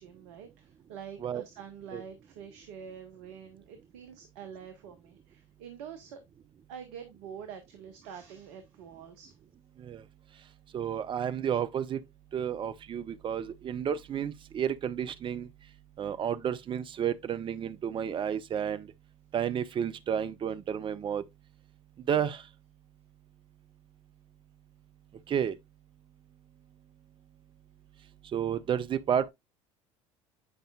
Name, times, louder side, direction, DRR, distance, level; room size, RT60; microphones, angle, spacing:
voice 1, 0.0-6.2 6.7-9.4, right 7 dB, 65° right, 1.0 m, -46 dB
voice 2, 10.7-12.0 12.3-15.5 16.0-18.9 19.3-21.2 22.1-22.4 25.3-25.6 28.3-29.3, right 8 dB, 30° right, 0.6 m, -31 dB
8.6 x 5.1 x 2.4 m
figure-of-eight pair, 65°, 16 cm